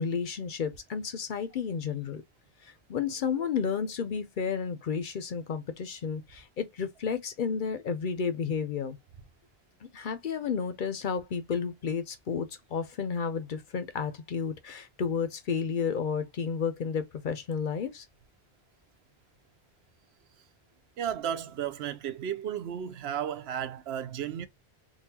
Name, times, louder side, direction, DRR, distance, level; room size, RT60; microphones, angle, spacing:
voice 1, 0.0-2.2 2.6-9.0 9.9-18.1, left 6 dB, 60° left, 0.7 m, -32 dB
voice 2, 21.0-24.5, right 9 dB, 80° right, 0.8 m, -34 dB
3.9 x 2.4 x 2.7 m
omnidirectional pair, 1.1 m